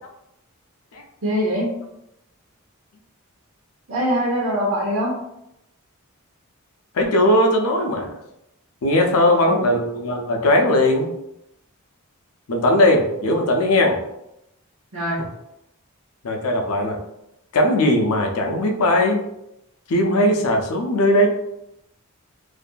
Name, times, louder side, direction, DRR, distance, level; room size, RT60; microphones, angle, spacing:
voice 1, 1.2-1.7 3.9-5.1 9.1-9.6 14.9-15.2, equal, 60° right, -7 dB, 0.7 m, -23 dB
voice 2, 6.9-8.2 8.8-11.1 12.5-14.0 16.2-17.0 17.5-19.2 19.9-21.3, left 1 dB, 75° left, 2 dB, 0.5 m, -18 dB
2.6 x 2.5 x 2.2 m, 0.83 s
head